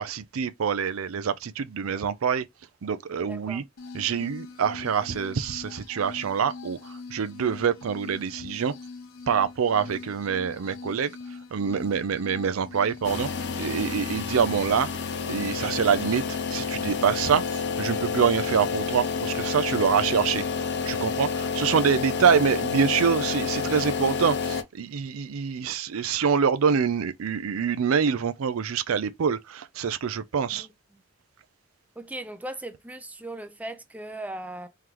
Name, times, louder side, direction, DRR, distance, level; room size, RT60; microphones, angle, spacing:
voice 1, 0.0-2.4 2.8-3.6 3.9-6.8 7.1-8.7 9.3-11.1 11.5-13.3 13.6-14.9 15.3-16.2 16.5-20.4 20.9-30.7, right 6 dB, 85° right, 0.5 m, -25 dB
voice 2, 3.2-3.6 4.1-4.3 30.5-31.0 32.0-34.7, right 1 dB, 5° right, 0.5 m, -39 dB
sound 1, 3.8-14.8, left 4 dB, 90° left, 0.9 m, -42 dB
sound 2, 13.0-24.6, left 5 dB, 55° left, 0.7 m, -29 dB
3.8 x 3.3 x 2.9 m
head